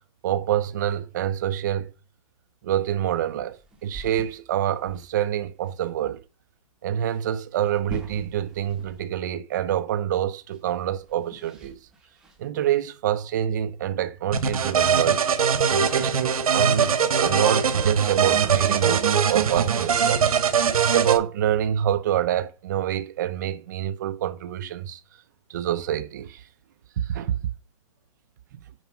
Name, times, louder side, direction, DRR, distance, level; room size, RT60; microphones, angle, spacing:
voice 1, 0.2-1.9 2.6-3.6 3.8-6.2 6.8-11.8 12.4-15.2 15.7-20.2 20.8-25.0 25.5-26.4 27.0-27.4, right 11 dB, 30° right, 0.8 m, -26 dB
sound 1, 3.3-5.3 5.6-5.7 6.1-6.2 7.6-9.3 9.5-9.6 10.5-12.5, right 2 dB, 5° right, 1.1 m, -43 dB
sound 2, 14.3-21.2, right 7 dB, 80° right, 1.5 m, -21 dB
9.3 x 4.9 x 5.3 m
hypercardioid pair, 170°, 18 cm